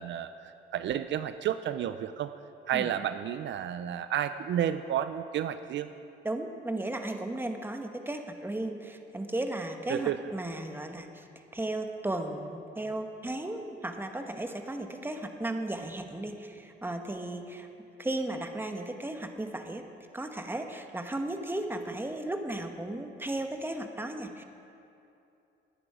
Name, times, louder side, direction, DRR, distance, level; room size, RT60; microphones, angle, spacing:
voice 1, 0.0-2.3 2.7-5.9 9.9-10.2, right 10 dB, 65° right, 11 dB, 0.5 m, -31 dB
voice 2, 6.2-11.2 11.5-17.7 18.0-19.8 20.1-24.4, right 1 dB, 10° right, 5 dB, 1.2 m, -35 dB
18.5 x 10.0 x 4.9 m, 2.7 s
cardioid pair, 90°, 20 cm